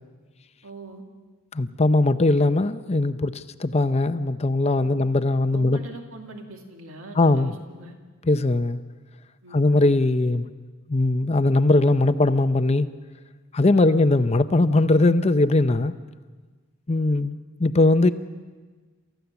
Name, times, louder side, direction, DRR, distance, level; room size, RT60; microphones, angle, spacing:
voice 1, 0.6-1.0 4.8-5.0 5.5-7.9 9.4-9.6 13.7-14.0, right 2 dB, 65° right, 3 dB, 2.3 m, -42 dB
voice 2, 1.5-5.8 7.2-7.5 8.3-8.8 9.5-10.5 10.9-12.9 13.5-15.9 16.9-18.1, left 2 dB, 30° left, 12 dB, 0.6 m, -20 dB
28.5 x 14.5 x 7.0 m, 1.4 s
head